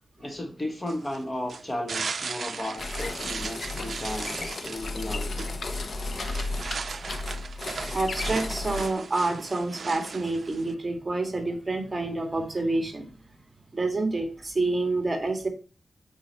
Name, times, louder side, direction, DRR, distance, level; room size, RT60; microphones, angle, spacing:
voice 1, 0.2-5.5, left 1 dB, 25° left, 4 dB, 1.2 m, -35 dB
sound 1, 0.9-10.7, right 5 dB, 60° right, 0.5 m, -37 dB
sound 2, 2.8-8.9, left 2 dB, 60° left, 1.0 m, -33 dB
voice 2, 7.9-13.0 13.7-15.5, right 2 dB, 30° right, 3 dB, 1.9 m, -28 dB
8.5 x 4.5 x 4.2 m, 0.36 s
wide cardioid pair, 105°, 0 cm